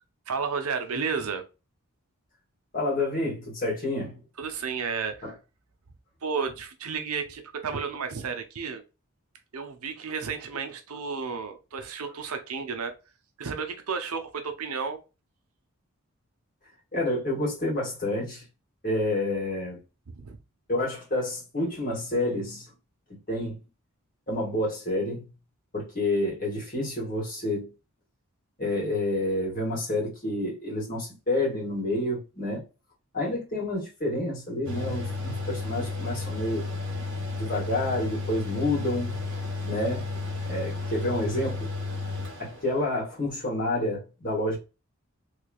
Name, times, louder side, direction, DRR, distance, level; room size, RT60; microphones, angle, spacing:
voice 1, 0.3-1.4 4.4-5.4 6.2-8.8 9.5-12.9 13.4-15.0 20.1-20.4, right 5 dB, 80° right, 0.7 m, -32 dB
voice 2, 2.7-4.2 5.2-5.3 16.9-18.4 18.8-19.8 20.7-22.7 23.3-23.6 24.3-25.2 25.7-27.7 28.6-32.6 33.1-36.6 37.1-39.2 39.6-40.1 40.5-41.7 42.4-44.6, left 1 dB, 40° left, 1.9 m, -29 dB
Mechanical fan, 34.6-43.1, left 3 dB, 55° right, 1.4 m, -33 dB
3.3 x 3.3 x 2.3 m
head